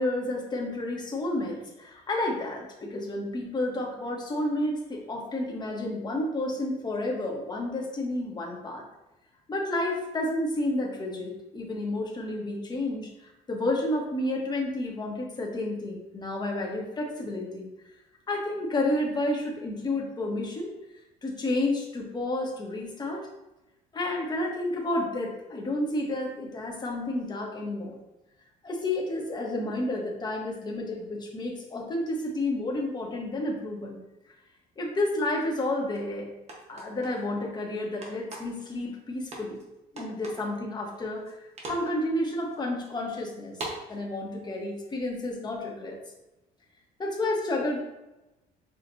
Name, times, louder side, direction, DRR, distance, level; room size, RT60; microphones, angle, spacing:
voice 1, 0.0-8.8 9.5-13.1 13.5-17.7 18.3-20.7 21.2-23.3 23.9-27.9 28.6-34.0 34.8-36.3 36.7-39.6 39.9-41.3 41.7-43.5 43.9-46.0 47.0-47.8, left 1 dB, 25° left, -1 dB, 1.0 m, -30 dB
sound 1, 35.9-36.0 36.5-37.2 38.0-38.6 39.3-39.6 40.0-40.5 40.9-41.3 41.6-41.9 42.5-42.6 43.5-43.8, right 2 dB, 40° right, 1.0 m, -39 dB
6.1 x 2.4 x 2.6 m, 0.97 s
cardioid pair, 110°, 17 cm